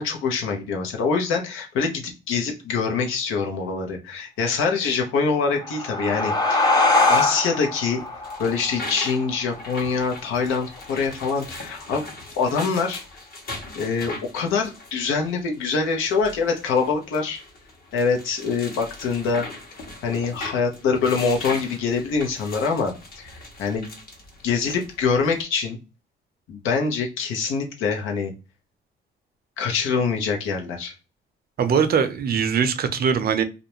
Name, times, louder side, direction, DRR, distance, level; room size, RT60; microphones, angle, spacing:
voice 1, 0.0-6.7 7.1-8.0 8.4-12.0 12.4-13.0 13.8-17.4 17.9-19.4 20.0-23.9 24.4-25.8 26.5-28.3 29.6-30.9, left 5 dB, 90° left, 3 dB, 0.7 m, -24 dB
sound 1, 5.4-10.5, left 2 dB, 20° left, 0.6 m, -23 dB
sound 2, 8.0-25.4, left 2 dB, 50° left, 0.9 m, -40 dB
voice 2, 31.6-33.4, right 6 dB, 50° right, 10 dB, 0.5 m, -21 dB
2.5 x 2.1 x 2.9 m, 0.29 s
cardioid pair, 90°, 20 cm